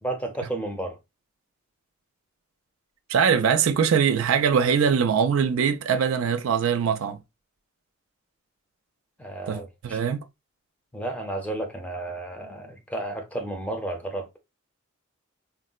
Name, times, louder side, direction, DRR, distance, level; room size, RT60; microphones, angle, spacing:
voice 1, 0.0-1.0 9.2-10.0 10.9-14.4, right 2 dB, 5° left, 0.6 m, -32 dB
voice 2, 3.1-7.2 9.5-10.2, right 7 dB, 70° right, 0.4 m, -22 dB
3.8 x 2.0 x 2.3 m
head